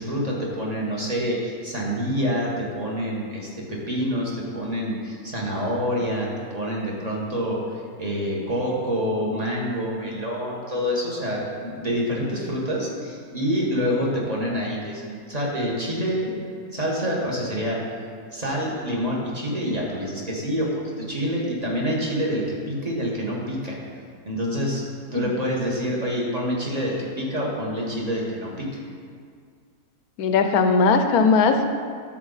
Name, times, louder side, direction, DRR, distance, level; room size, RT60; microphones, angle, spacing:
voice 1, 0.0-16.3 16.7-17.8 18.3-23.8 24.2-24.8 25.1-28.7, equal, 25° right, -3 dB, 1.5 m, -27 dB
voice 2, 30.2-31.7, left 4 dB, 75° left, 7 dB, 1.1 m, -19 dB
12.5 x 4.6 x 4.0 m, 2.1 s
omnidirectional pair, 1.6 m